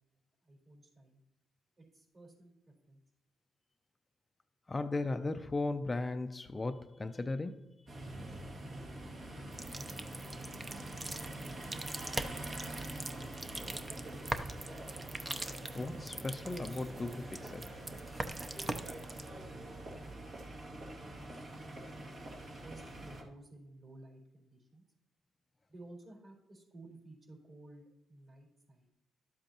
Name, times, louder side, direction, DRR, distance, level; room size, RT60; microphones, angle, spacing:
voice 1, 0.4-1.2 1.8-3.0 21.0-22.2 22.6-24.8 25.7-28.9, right 2 dB, 40° right, 4.0 m, -57 dB
voice 2, 4.7-7.9 15.7-17.8, left 2 dB, 25° left, 0.5 m, -37 dB
sound 1, 7.9-23.2, right 1 dB, 60° right, 2.4 m, -45 dB
sound 2, 9.5-19.3, right 2 dB, 20° right, 0.6 m, -43 dB
12.0 x 7.7 x 2.9 m
cardioid pair, 90°, 0 cm